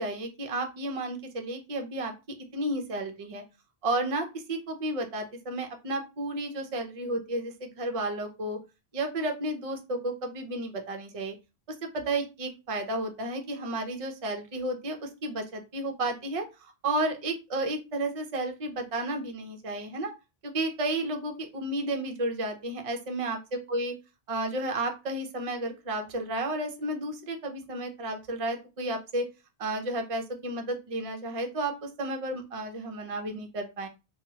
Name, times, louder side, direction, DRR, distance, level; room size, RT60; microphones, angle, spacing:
voice 1, 0.0-2.1 2.5-3.4 3.8-8.6 8.9-11.3 11.7-20.1 20.4-23.4 23.7-23.9 24.3-29.3 29.6-33.9, right 2 dB, 40° right, 4 dB, 0.6 m, -32 dB
2.9 x 2.4 x 2.7 m, 0.27 s
omnidirectional pair, 1.1 m